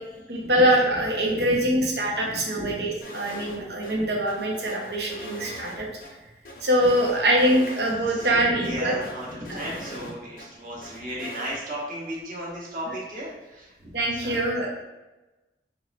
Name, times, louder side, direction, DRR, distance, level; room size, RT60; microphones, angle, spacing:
voice 1, 0.3-5.9 6.6-9.0 13.9-14.7, right 1 dB, 65° right, -2 dB, 0.9 m, -23 dB
voice 2, 1.2-1.7 2.2-2.9 3.2-3.6 3.9-4.1 6.8-6.9 7.1-7.4 8.1-14.7, equal, 45° right, -5 dB, 1.2 m, -36 dB
sound 1, 3.0-3.6 3.8-3.9 4.3-6.1 6.4-7.9 8.2-8.3 8.6-10.5 10.8-11.6, equal, 50° left, 0.6 m, -41 dB
4.6 x 3.1 x 2.5 m, 1.1 s
head